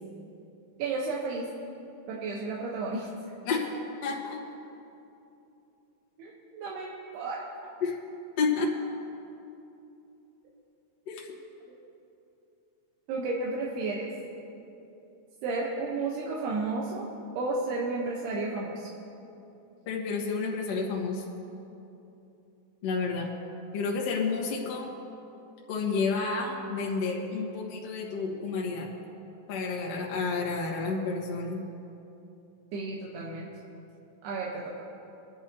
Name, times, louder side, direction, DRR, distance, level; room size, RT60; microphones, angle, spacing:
voice 1, 0.8-1.5 2.1-3.1 6.2-7.4 13.1-14.1 15.4-17.1 17.4-18.9 32.7-33.5 34.2-34.6, right 3 dB, 85° right, -3 dB, 3.1 m, -32 dB
voice 2, 4.0-4.4 7.8-7.9 8.4-8.7 11.1-11.4 19.9-21.2 22.8-23.3 23.7-24.9 25.7-28.9 29.5-31.6, left 4 dB, 55° left, -2 dB, 2.0 m, -30 dB
24.5 x 10.5 x 2.8 m, 2.8 s
omnidirectional pair, 4.5 m